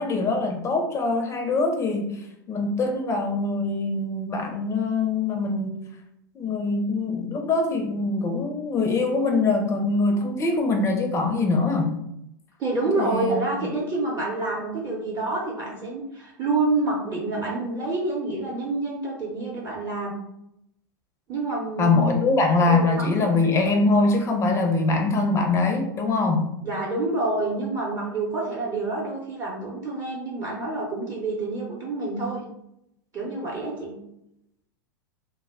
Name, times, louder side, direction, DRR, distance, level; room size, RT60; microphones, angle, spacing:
voice 1, 0.0-2.2 2.5-5.8 6.3-12.0 13.0-13.7 21.8-26.5, left 3 dB, 25° left, 3 dB, 0.5 m, -23 dB
voice 2, 12.6-20.1 21.3-22.3 22.7-23.3 26.6-32.4 33.1-33.9, right 2 dB, 30° right, -5 dB, 0.7 m, -28 dB
2.2 x 2.0 x 3.4 m, 0.80 s
hypercardioid pair, 100°, 11 cm